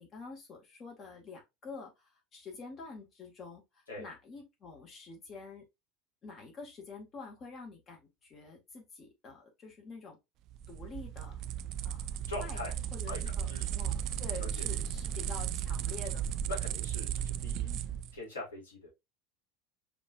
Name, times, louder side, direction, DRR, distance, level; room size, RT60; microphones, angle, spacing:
voice 1, 0.0-5.6 6.2-10.2 10.7-11.4 11.8-12.1 12.4-12.6 12.9-16.4, left 4 dB, 30° left, 2.3 m, -47 dB
sound 1, 10.5-18.1, right 9 dB, 45° right, 0.3 m, -35 dB
voice 2, 12.3-12.7 13.1-13.7 14.4-14.7 16.5-17.8 18.1-18.9, left 2 dB, 70° left, 2.7 m, -42 dB
5.1 x 3.4 x 2.7 m
figure-of-eight pair, 75°, 0 cm